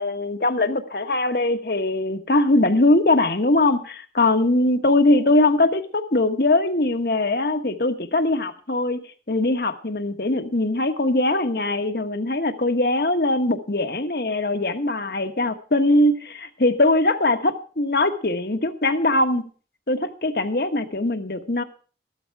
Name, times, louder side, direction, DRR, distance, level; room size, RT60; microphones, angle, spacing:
voice 1, 0.0-9.0 9.3-19.5 19.9-21.6, left 2 dB, 60° left, 8 dB, 1.3 m, -21 dB
14.0 x 13.0 x 4.7 m, 0.39 s
head